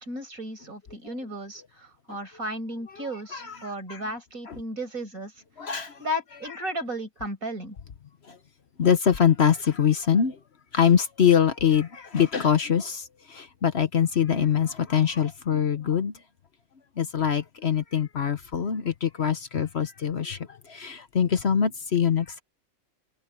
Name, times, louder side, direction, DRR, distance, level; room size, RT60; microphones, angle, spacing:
voice 1, 0.0-5.3 5.6-5.7 6.0-7.8, equal, 75° right, 6.0 m, -34 dB
voice 2, 3.0-4.0 4.5-4.6 5.6-6.0 8.2-8.4 8.8-10.4 10.7-16.1 17.0-22.4, left 8 dB, 50° left, 1.1 m, -24 dB
omnidirectional pair, 1.5 m